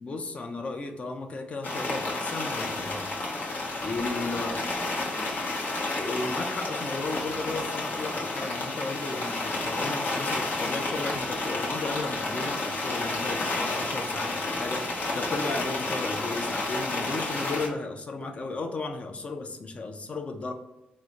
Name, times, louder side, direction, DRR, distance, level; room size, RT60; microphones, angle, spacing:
voice 1, 0.0-3.1 3.8-4.6 6.0-20.5, left 3 dB, 40° left, 4 dB, 0.4 m, -34 dB
sound 1, 1.6-17.7, left 2 dB, 70° left, 0.9 m, -31 dB
3.6 x 2.1 x 2.9 m, 0.93 s
cardioid pair, 95°, 3 cm